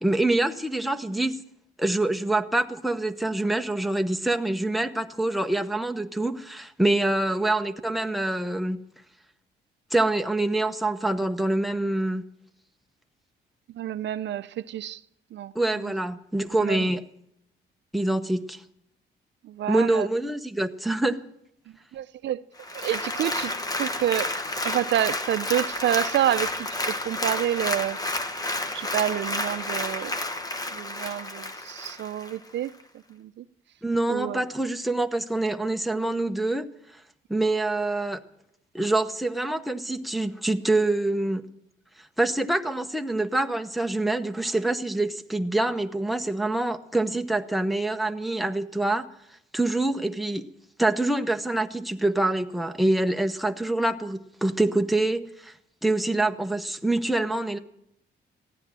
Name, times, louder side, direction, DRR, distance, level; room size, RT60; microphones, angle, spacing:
voice 1, 0.0-1.4 1.8-8.8 9.9-12.3 15.5-17.0 17.9-18.6 19.7-21.2 33.8-36.7 37.3-38.2 38.7-41.4 42.2-49.1 49.5-50.5 50.8-55.5 55.8-57.6, right 2 dB, ahead, 0.9 m, -25 dB
voice 2, 13.7-15.0 15.3-15.5 15.8-15.9 16.6-16.9 19.4-20.1 21.9-22.4 22.7-23.5 23.8-24.3 24.6-28.0 28.7-30.2 30.7-32.7 33.1-33.4 34.1-34.4, right 11 dB, 65° right, 0.5 m, -28 dB
Applause, 22.6-32.4 32.8-32.9, left 2 dB, 20° left, 1.1 m, -30 dB
15.5 x 9.9 x 7.5 m
cardioid pair, 90°, 20 cm